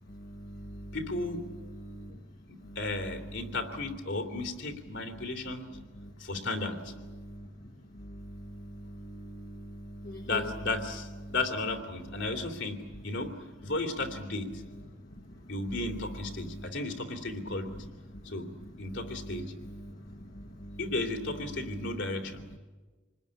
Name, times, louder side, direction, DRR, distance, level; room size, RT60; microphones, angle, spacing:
voice 1, 0.1-0.9 1.8-2.1 2.6-2.8 6.0-6.1 7.2-7.5 7.9-10.4 11.2-11.3 16.5-16.7 18.9-19.0 19.3-19.9 20.2-20.8, equal, 50° left, 3 dB, 1.2 m, -43 dB
voice 2, 0.9-1.4 2.5-5.7 6.2-6.9 10.3-12.8 13.0-13.3 13.6-14.5 15.5-17.7 18.2-18.5 18.8-19.4 20.8-22.4, left 2 dB, 70° left, 5 dB, 2.9 m, -34 dB
27.0 x 20.5 x 10.0 m, 1.3 s
head